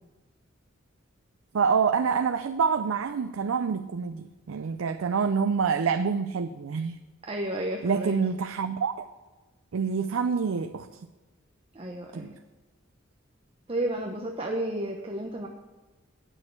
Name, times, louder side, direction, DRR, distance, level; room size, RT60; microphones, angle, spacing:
voice 1, 1.5-7.0 7.8-9.1 9.7-11.1 12.1-12.3, right 6 dB, 90° right, 9 dB, 0.4 m, -27 dB
voice 2, 7.3-8.2 11.7-12.3 13.7-15.5, right 1 dB, 30° right, 1 dB, 0.8 m, -32 dB
9.0 x 6.3 x 8.5 m, 1.2 s
head